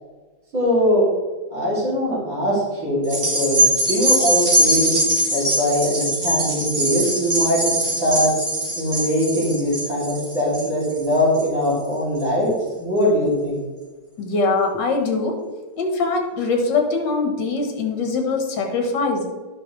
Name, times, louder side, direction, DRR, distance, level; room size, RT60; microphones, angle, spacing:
voice 1, 0.5-1.1 1.5-3.6 3.9-4.9 5.3-8.3 8.8-12.5 12.8-13.6, equal, 75° right, -7 dB, 3.7 m, -21 dB
sound 1, 3.0-11.7 12.2-12.3, right 1 dB, 40° right, 2.3 m, -22 dB
voice 2, 14.2-15.4 15.8-19.2, left 3 dB, 65° left, 3 dB, 1.8 m, -22 dB
10.0 x 6.0 x 3.2 m, 1.2 s
omnidirectional pair, 2.1 m